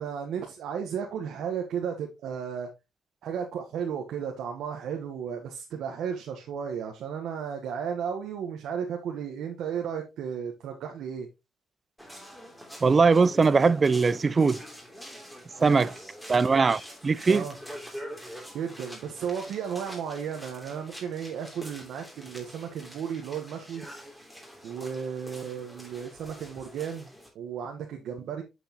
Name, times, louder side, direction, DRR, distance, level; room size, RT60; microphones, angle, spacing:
voice 1, 0.0-2.7 3.2-11.3 15.6-15.9 17.2-17.5 18.5-23.9 24.6-27.1 27.3-28.4, right 7 dB, 75° right, 1.2 m, -34 dB
sound 1, 12.0-27.3, equal, 5° left, 3.0 m, -45 dB
voice 2, 12.8-14.6 15.6-15.9 16.3-17.5, right 4 dB, 35° right, 0.4 m, -21 dB
8.3 x 6.3 x 2.9 m
cardioid pair, 90°, 0 cm